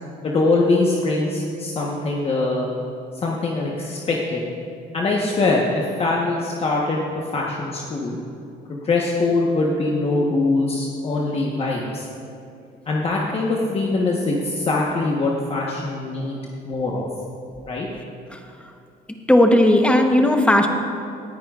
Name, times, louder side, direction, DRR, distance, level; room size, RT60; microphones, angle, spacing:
voice 1, 0.2-2.7 3.1-4.4 4.9-7.0 7.3-8.2 8.7-12.0 12.9-16.4 16.6-17.1 17.7-17.9, left 2 dB, 35° left, -2 dB, 1.2 m, -22 dB
voice 2, 19.3-20.7, left 1 dB, 5° left, 3 dB, 1.1 m, -15 dB
18.5 x 10.0 x 2.5 m, 2.6 s
cardioid pair, 110°, 17 cm